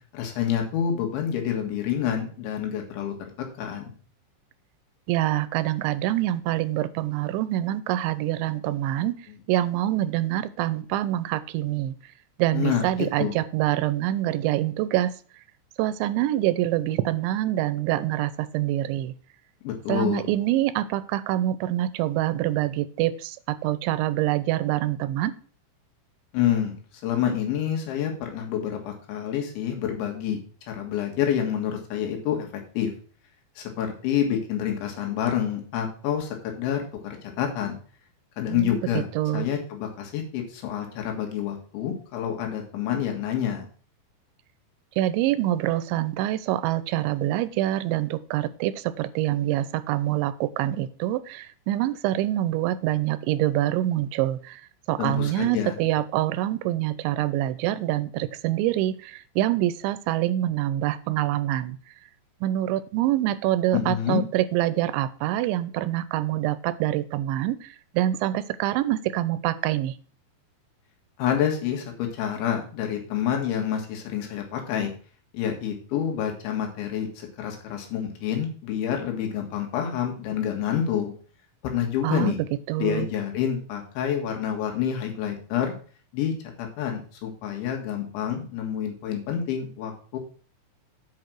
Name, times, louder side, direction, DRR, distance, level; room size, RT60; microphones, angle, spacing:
voice 1, 0.1-3.9 12.5-12.9 13.2-13.3 19.6-20.3 26.3-30.4 30.7-32.5 32.8-32.9 33.6-37.8 38.4-39.1 39.3-43.7 55.0-55.8 63.7-64.2 71.2-74.9 75.3-81.1 81.6-82.4 82.8-85.7 86.1-90.2, left 9 dB, 90° left, 2 dB, 4.1 m, -28 dB
voice 2, 5.1-9.1 9.5-12.0 12.4-15.1 15.8-19.1 19.9-25.3 38.5-38.8 39.2-39.5 45.0-54.6 54.9-61.8 62.4-69.9 82.0-82.3 82.7-83.1, right 14 dB, 90° right, 15 dB, 3.0 m, -25 dB
8.6 x 5.2 x 6.1 m, 0.41 s
omnidirectional pair, 5.2 m